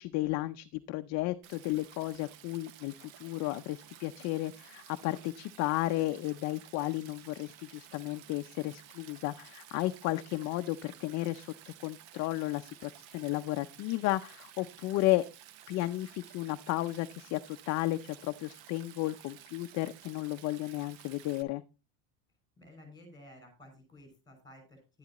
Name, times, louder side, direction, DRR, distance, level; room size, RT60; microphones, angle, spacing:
voice 1, 0.0-15.2 15.7-21.6, left 17 dB, 40° left, 9 dB, 0.5 m, -33 dB
Stream, 1.4-21.4, right 11 dB, 75° right, 1.1 m, -54 dB
voice 2, 22.6-25.0, left 1 dB, 10° left, 5 dB, 5.9 m, -54 dB
11.5 x 10.5 x 2.9 m, 0.30 s
cardioid pair, 165°, 42 cm